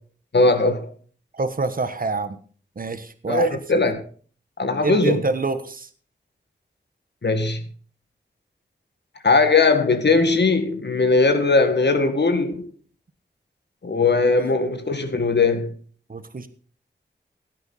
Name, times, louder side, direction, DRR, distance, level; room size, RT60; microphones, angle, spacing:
voice 1, 0.3-0.9 3.3-4.0 4.6-5.2 7.2-7.6 9.2-12.7 13.8-15.7, left 3 dB, 70° left, 1.8 m, -19 dB
voice 2, 1.4-2.4 2.8-3.6 4.8-5.9 14.2-14.3 16.1-16.5, right 3 dB, 50° right, 1.3 m, -26 dB
16.5 x 9.2 x 4.2 m
wide cardioid pair, 70°, 19 cm